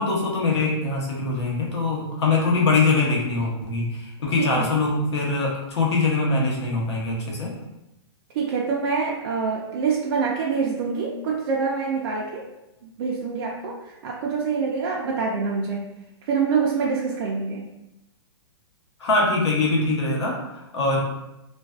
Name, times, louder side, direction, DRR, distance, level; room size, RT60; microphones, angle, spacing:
voice 1, 0.0-7.5 19.0-21.0, left 3 dB, 80° left, -2 dB, 0.9 m, -23 dB
voice 2, 8.3-12.5 12.8-15.8 16.3-17.7, right 5 dB, 55° right, -3 dB, 0.4 m, -25 dB
2.4 x 2.2 x 2.3 m, 0.92 s
hypercardioid pair, 140°, 14 cm